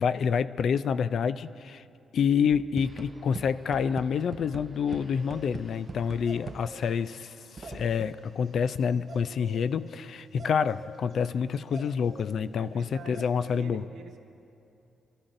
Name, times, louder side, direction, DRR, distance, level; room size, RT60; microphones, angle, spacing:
voice 1, 0.0-1.8 2.1-13.8, left 7 dB, 60° left, 15 dB, 0.3 m, -28 dB
sound 1, 2.5-7.0 7.6-8.3, right 4 dB, 30° right, 0.3 m, -43 dB
sound 2, 2.8-9.3, right 1 dB, 10° left, 2.4 m, -59 dB
sound 3, 5.2-5.5 6.3-8.1 9.1-9.6 10.4-11.1 11.5-12.3 12.8-12.9 13.1-13.6, right 3 dB, 45° right, 1.1 m, -46 dB
voice 2, 12.5-14.2, right 5 dB, 80° right, 4 dB, 1.1 m, -47 dB
28.0 x 13.0 x 2.6 m, 2.7 s
cardioid pair, 135°, 0 cm